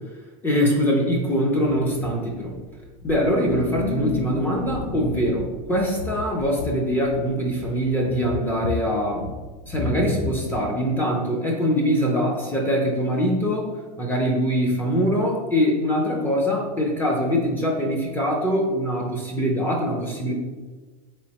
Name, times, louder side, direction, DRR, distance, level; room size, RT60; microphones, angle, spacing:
voice 1, 0.4-2.5 3.0-9.2 9.7-13.7 14.0-20.3, equal, 10° left, -1 dB, 0.4 m, -23 dB
sound 1, 1.6-10.7, left 3 dB, 80° left, 0.5 m, -33 dB
3.8 x 3.1 x 2.8 m, 1.3 s
supercardioid pair, 155°, 19 cm